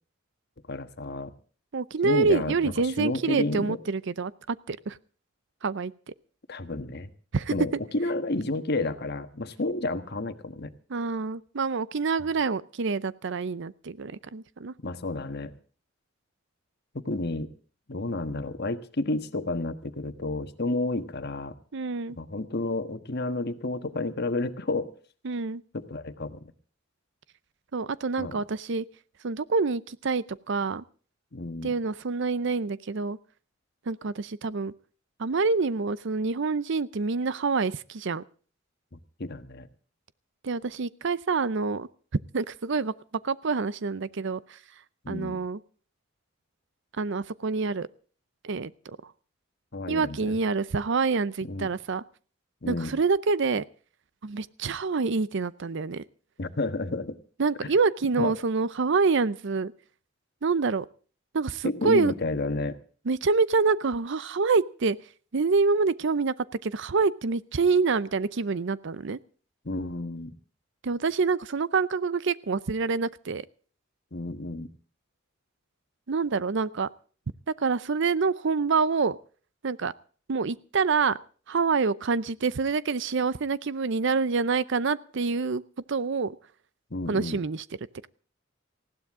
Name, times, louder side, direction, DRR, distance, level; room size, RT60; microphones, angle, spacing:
voice 1, 0.7-1.3 2.0-3.8 6.5-7.1 7.5-10.7 14.8-15.5 16.9-17.5 17.9-21.5 22.2-24.9 25.7-26.5 28.2-28.4 31.3-31.7 39.2-39.7 45.0-45.4 49.7-50.3 51.4-51.7 52.6-52.9 56.4-57.2 57.6-57.7 58.2-58.3 61.6-62.8 69.6-70.3 74.1-74.7 86.9-87.4, left 2 dB, 55° left, 9 dB, 1.4 m, -31 dB
voice 2, 1.7-5.0 5.6-5.9 7.3-7.5 10.9-14.7 21.7-22.2 25.2-25.6 27.7-28.8 29.2-30.8 31.6-33.2 33.9-34.7 35.2-38.2 40.4-41.9 42.3-42.9 43.2-44.6 45.1-45.6 46.9-47.9 48.4-48.7 49.9-52.0 52.7-53.6 54.2-56.0 57.4-59.7 60.4-60.9 61.3-62.1 63.1-65.0 65.3-66.3 66.6-69.2 70.8-73.4 76.1-76.9 77.6-79.2 79.6-79.9 80.3-81.2 81.5-85.6 85.9-86.4 87.1-87.6, right 4 dB, 65° right, 18 dB, 0.6 m, -26 dB
19.5 x 16.0 x 3.7 m, 0.41 s
head